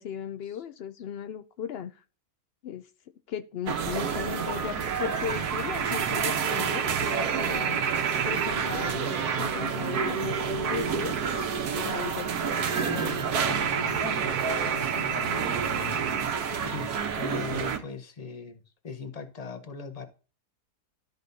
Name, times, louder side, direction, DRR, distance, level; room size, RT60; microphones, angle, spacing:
voice 1, 0.0-2.0 2.6-2.9 3.3-7.8 8.2-11.1 11.7-12.3 14.9-16.0, left 8 dB, 90° left, 0.5 m, -37 dB
sound 1, 3.7-17.8, right 6 dB, 80° right, 1.4 m, -28 dB
voice 2, 12.7-15.4 16.6-20.0, left 5 dB, 30° left, 0.8 m, -40 dB
12.5 x 5.2 x 2.7 m
omnidirectional pair, 1.6 m